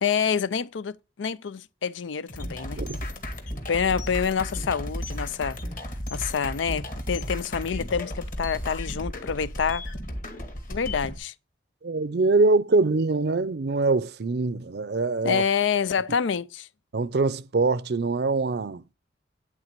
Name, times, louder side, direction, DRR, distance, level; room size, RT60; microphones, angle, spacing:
voice 1, 0.0-2.8 3.7-5.6 6.1-9.8 10.7-11.3 15.2-16.7, left 6 dB, 85° left, 0.5 m, -27 dB
sound 1, 2.3-11.2, left 1 dB, 45° left, 2.1 m, -34 dB
voice 2, 11.8-15.4 16.9-18.8, right 3 dB, 60° right, 0.5 m, -23 dB
11.0 x 3.9 x 6.7 m
head